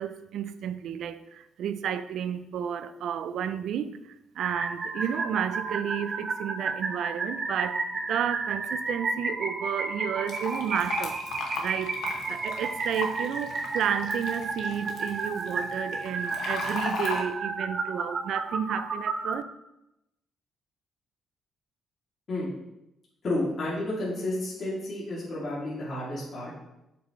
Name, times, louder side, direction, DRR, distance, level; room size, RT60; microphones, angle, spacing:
voice 1, 0.0-7.8 8.1-11.2 11.6-12.0 12.3-19.4, right 9 dB, 75° right, 0.5 m, -32 dB
sound 1, 4.4-19.4, right 3 dB, 45° right, 1.2 m, -32 dB
Fill (with liquid), 10.3-17.2, left 3 dB, 80° left, 1.5 m, -36 dB
voice 2, 23.2-26.5, left 1 dB, 50° left, 2.8 m, -31 dB
8.1 x 6.1 x 3.2 m
cardioid pair, 90°, 0 cm